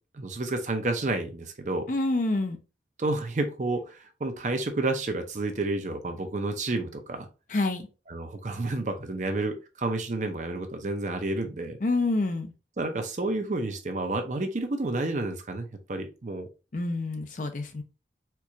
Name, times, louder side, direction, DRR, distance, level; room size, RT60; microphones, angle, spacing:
voice 1, 0.1-1.9 3.0-7.3 8.1-11.8 12.8-16.5, right 2 dB, 45° right, 0.6 m, -30 dB
voice 2, 1.9-2.6 7.5-7.9 11.8-12.5 16.7-17.8, left 2 dB, 45° left, 0.5 m, -27 dB
4.5 x 2.4 x 2.7 m
head